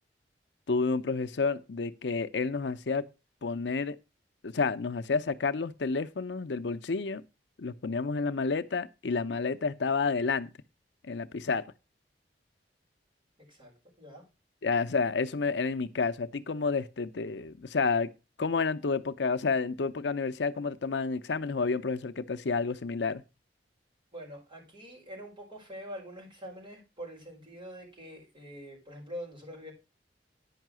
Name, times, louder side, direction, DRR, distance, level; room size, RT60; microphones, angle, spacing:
voice 1, 0.7-3.1 3.4-4.0 4.4-7.2 7.6-10.5 11.1-11.7 14.6-18.1 18.4-23.2, left 4 dB, 85° left, 0.6 m, -30 dB
voice 2, 24.1-29.7, equal, 30° right, 4.9 m, -44 dB
9.9 x 5.6 x 6.1 m
head